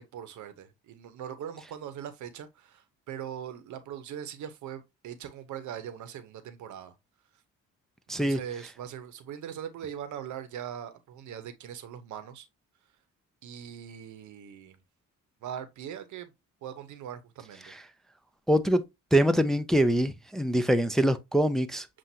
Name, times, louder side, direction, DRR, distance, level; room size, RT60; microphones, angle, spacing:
voice 1, 0.0-6.9 8.2-12.5 13.4-14.8 15.4-16.3 16.6-17.7, right 9 dB, 75° right, 0.9 m, -41 dB
voice 2, 18.5-18.8 19.1-21.9, right 1 dB, ahead, 0.4 m, -24 dB
7.4 x 2.5 x 2.7 m
cardioid pair, 90°, 30 cm